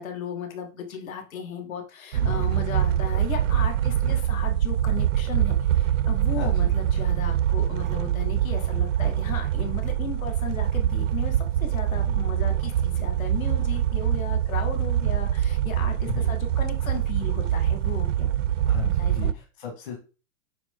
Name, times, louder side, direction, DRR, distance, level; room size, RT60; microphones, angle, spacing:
voice 1, 0.0-18.3 18.8-19.1, left 6 dB, 70° left, 4 dB, 2.4 m, -36 dB
sound 1, 2.1-19.3, right 11 dB, 60° right, 0.5 m, -24 dB
voice 2, 18.7-19.9, left 10 dB, 35° left, -1 dB, 1.9 m, -35 dB
9.4 x 4.5 x 3.9 m, 0.33 s
hypercardioid pair, 180°, 43 cm